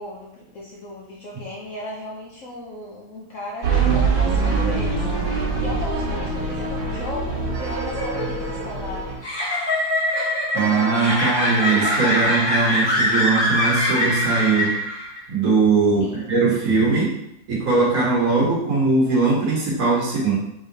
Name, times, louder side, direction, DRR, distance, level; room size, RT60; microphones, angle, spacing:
voice 1, 0.0-5.1 5.6-9.2 16.0-16.3, left 1 dB, 60° left, -4 dB, 0.8 m, -36 dB
sound 1, 3.6-9.2, right 4 dB, 75° right, 1.6 m, -23 dB
Clock, 7.5-9.8 10.6-14.0, right 2 dB, 90° right, 1.5 m, -36 dB
sound 2, 7.6-15.2, left 1 dB, 20° left, 0.8 m, -23 dB
voice 2, 10.5-14.7 15.3-17.1 17.5-20.3, right 4 dB, 50° right, -4 dB, 1.4 m, -20 dB
3.7 x 3.5 x 3.8 m, 0.79 s
omnidirectional pair, 1.9 m